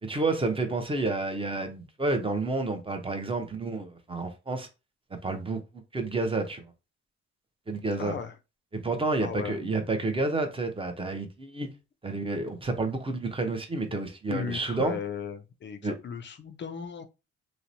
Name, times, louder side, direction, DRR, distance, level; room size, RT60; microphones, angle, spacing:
voice 1, 0.0-4.7 5.2-5.6 5.9-6.6 7.7-8.1 8.7-11.7 12.0-15.0 15.8-15.9, right 3 dB, 20° right, 0.6 m, -30 dB
voice 2, 8.0-8.4 9.2-9.6 14.3-17.0, left 6 dB, 40° left, 0.4 m, -36 dB
2.9 x 2.0 x 2.6 m
cardioid pair, 90°, 30 cm